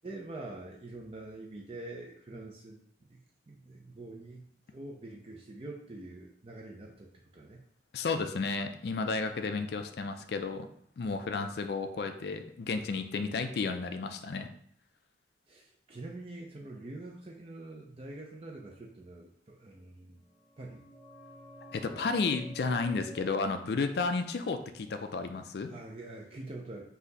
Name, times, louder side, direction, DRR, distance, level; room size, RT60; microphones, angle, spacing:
voice 1, 0.0-2.8 3.1-3.2 3.5-7.6 15.5-20.2 20.6-20.9 25.7-26.8, right 2 dB, 30° right, -1 dB, 0.4 m, -45 dB
voice 2, 7.9-10.7 11.0-14.5 21.7-25.7, left 4 dB, 60° left, 7 dB, 0.4 m, -32 dB
sound 1, 20.2-25.6 25.9-26.0, equal, 20° left, 0.7 m, -52 dB
4.1 x 2.8 x 4.0 m, 0.64 s
head